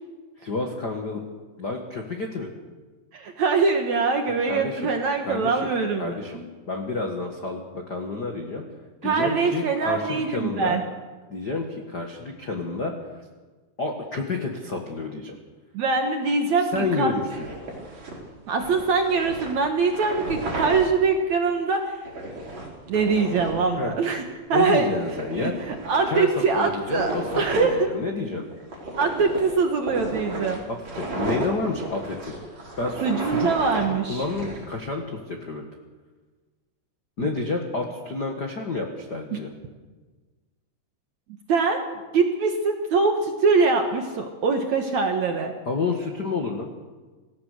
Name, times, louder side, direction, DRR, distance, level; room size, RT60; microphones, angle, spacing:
voice 1, 0.4-1.2 1.6-2.5 4.5-4.9 5.2-5.7 6.0-6.4 6.7-8.6 9.0-10.8 11.3-12.9 13.8-15.4 16.7-17.4 23.8-23.9 24.5-25.5 26.1-26.3 26.5-28.4 30.7-32.3 32.8-33.5 34.1-35.6 37.2-39.5 45.6-46.7, left 3 dB, 65° left, 2 dB, 0.9 m, -29 dB
voice 2, 3.1-6.4 9.0-10.8 15.7-17.1 18.5-22.0 22.9-24.2 24.5-24.9 25.3-27.9 29.0-30.6 33.0-34.2 37.2-37.3 39.3-39.4 41.5-41.8 42.1-45.5, right 4 dB, 60° right, 4 dB, 2.0 m, -23 dB
sound 1, 16.7-20.9 21.5-21.6 22.0-23.7 24.2-24.3 24.6-24.7 25.0-27.8 28.5-34.8, right 2 dB, 40° right, 5.5 m, -34 dB
26.0 x 16.5 x 6.6 m, 1.3 s
omnidirectional pair, 4.9 m